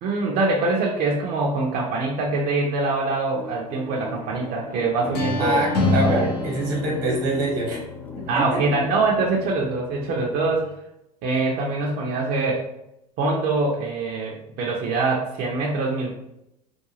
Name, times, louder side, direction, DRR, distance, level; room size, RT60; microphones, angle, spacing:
voice 1, 0.0-6.3 8.3-10.7 11.2-12.6 13.2-16.1, right 3 dB, 45° right, -1 dB, 0.6 m, -24 dB
sound 1, 3.3-9.0, left 3 dB, 10° left, 0.3 m, -39 dB
sound 2, 5.0-10.6, left 3 dB, 70° left, 0.6 m, -28 dB
voice 2, 5.4-7.8 8.2-8.6, right 2 dB, 75° right, -1 dB, 1.1 m, -25 dB
2.4 x 2.2 x 3.1 m, 0.85 s
hypercardioid pair, 75°, 21 cm